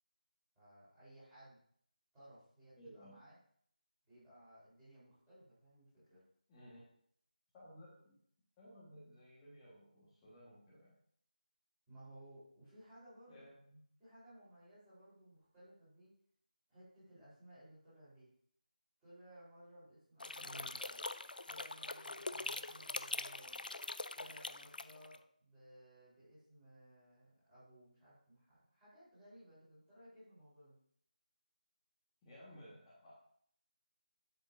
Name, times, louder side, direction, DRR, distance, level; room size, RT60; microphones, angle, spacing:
voice 1, 0.6-1.6 2.1-3.4 4.0-6.2 11.9-13.5 14.0-16.1 16.7-18.3 19.0-21.0 21.4-23.6 24.1-30.7, right 1 dB, 10° right, -13 dB, 4.0 m, -60 dB
voice 2, 2.8-3.2 6.5-6.8 7.5-8.2 8.6-11.0 13.3-13.8 20.4-20.8 32.2-33.4, equal, 10° left, -11 dB, 1.4 m, -57 dB
sound 1, 20.2-25.2, left 2 dB, 80° left, 0.5 m, -43 dB
10.5 x 7.2 x 2.6 m, 0.64 s
figure-of-eight pair, 175°, 5 cm